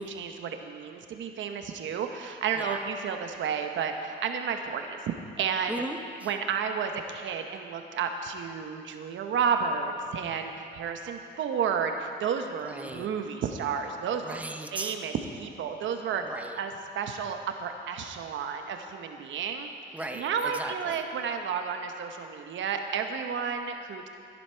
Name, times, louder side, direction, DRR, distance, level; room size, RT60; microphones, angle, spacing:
voice 1, 0.0-5.0 5.4-5.8 6.2-14.4 14.7-16.2 16.6-24.1, right 6 dB, 70° right, 5 dB, 1.0 m, -32 dB
voice 2, 5.7-6.3 12.6-13.1 14.2-15.0 16.2-16.6 19.9-21.0, right 1 dB, 5° right, 4 dB, 0.9 m, -37 dB
14.0 x 10.5 x 4.5 m, 2.6 s
cardioid pair, 90°, 20 cm